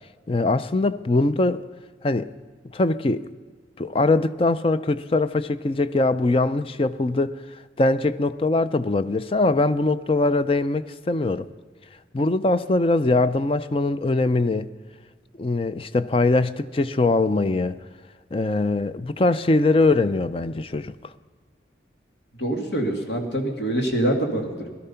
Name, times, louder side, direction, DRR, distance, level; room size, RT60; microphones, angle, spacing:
voice 1, 0.3-1.7 2.0-2.3 2.7-3.3 3.8-7.3 7.8-11.5 12.1-14.7 15.4-17.8 18.3-20.9, left 2 dB, 30° left, 0.4 m, -22 dB
voice 2, 22.4-24.7, right 1 dB, 80° left, 2.3 m, -25 dB
17.0 x 12.5 x 5.7 m
head